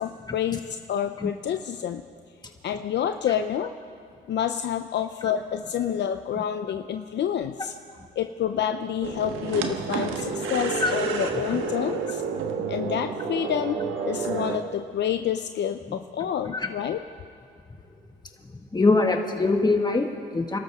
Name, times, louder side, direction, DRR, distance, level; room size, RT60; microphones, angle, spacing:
voice 1, 0.0-2.0 2.6-3.7 4.3-7.7 8.2-12.2 12.7-13.8 14.0-17.0, left 9 dB, 60° left, 8 dB, 0.6 m, -28 dB
sound 1, 9.0-14.6, right 5 dB, 85° right, 1.4 m, -30 dB
voice 2, 18.4-20.6, left 3 dB, 20° left, 3 dB, 1.9 m, -23 dB
29.0 x 13.0 x 3.7 m, 2.5 s
cardioid pair, 90°, 20 cm